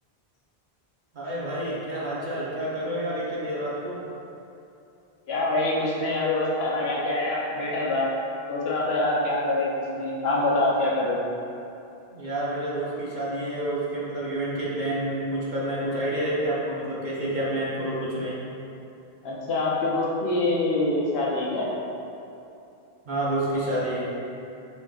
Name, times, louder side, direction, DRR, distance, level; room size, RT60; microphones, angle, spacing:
voice 1, 1.1-4.0 12.1-18.4 23.0-24.1, right 1 dB, 50° right, -8 dB, 1.0 m, -29 dB
voice 2, 5.3-8.1 8.5-9.7 9.9-11.2 19.2-21.7, left 2 dB, 80° left, -5 dB, 1.0 m, -25 dB
4.4 x 3.7 x 2.4 m, 2.8 s
omnidirectional pair, 1.0 m